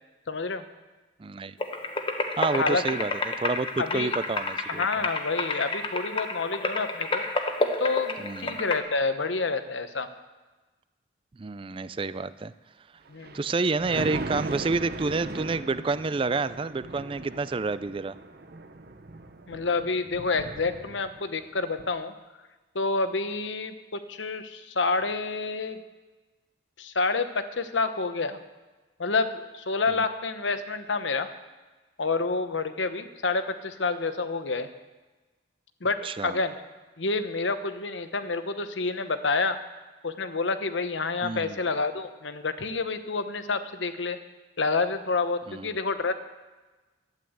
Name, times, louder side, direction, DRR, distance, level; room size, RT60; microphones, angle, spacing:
voice 1, 0.3-0.6 2.5-2.8 3.8-4.1 4.7-7.2 7.8-10.1 13.1-13.4 19.5-22.1 22.7-25.8 26.8-28.4 29.0-31.3 32.0-34.7 35.8-36.6 37.0-39.6 40.0-44.2 44.6-46.1, left 3 dB, 85° left, 10 dB, 1.0 m, -28 dB
voice 2, 1.2-1.6 2.4-5.1 8.2-8.6 11.4-12.5 13.3-18.2 36.0-36.4 41.2-41.6 45.5-45.7, right 3 dB, 30° right, 15 dB, 0.4 m, -29 dB
sound 1, 1.6-8.8, left 2 dB, 30° left, 1.1 m, -30 dB
Thunder, 13.1-21.4 21.8-21.9, right 2 dB, 55° right, 1.0 m, -39 dB
12.5 x 10.0 x 7.9 m, 1.2 s
head